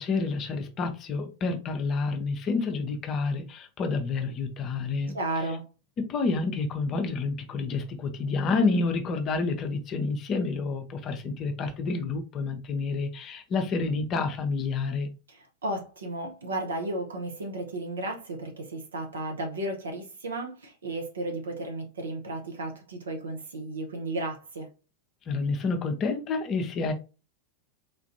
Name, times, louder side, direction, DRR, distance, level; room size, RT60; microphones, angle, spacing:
voice 1, 0.0-5.2 6.0-15.1 25.3-26.9, left 4 dB, 30° left, 0.6 m, -29 dB
voice 2, 5.1-5.7 15.3-24.7, right 2 dB, 65° right, 0.9 m, -34 dB
3.7 x 2.5 x 2.6 m
figure-of-eight pair, 90°, 0 cm